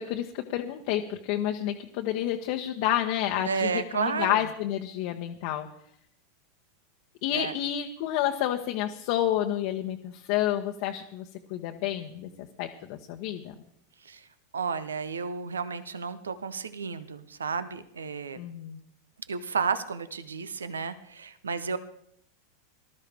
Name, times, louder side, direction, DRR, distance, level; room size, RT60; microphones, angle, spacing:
voice 1, 0.0-5.7 7.2-13.5 18.4-18.8, left 12 dB, 55° left, 2 dB, 1.0 m, -30 dB
voice 2, 3.4-4.4 7.3-7.5 14.0-14.3 14.5-18.4 19.3-21.8, right 5 dB, 80° right, 14 dB, 0.8 m, -32 dB
19.5 x 13.0 x 3.5 m, 0.69 s
hypercardioid pair, 90°, 0 cm